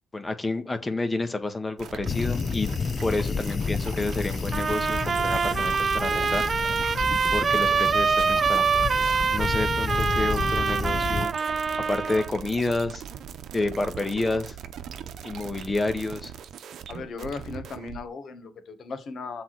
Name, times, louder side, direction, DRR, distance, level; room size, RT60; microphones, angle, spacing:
voice 1, 0.1-2.7 3.0-6.9 7.3-8.7 9.3-11.3 11.6-13.0 13.5-14.6 15.2-16.3, left 2 dB, 25° left, 1.7 m, -29 dB
sound 1, 1.8-18.1, right 8 dB, 70° right, 0.9 m, -40 dB
sound 2, 2.1-11.3, left 5 dB, 45° left, 0.4 m, -31 dB
sound 3, 4.5-12.3, right 5 dB, 45° right, 0.3 m, -25 dB
voice 2, 16.9-19.4, left 4 dB, 60° left, 1.8 m, -37 dB
7.6 x 4.3 x 6.1 m
supercardioid pair, 70°, 0 cm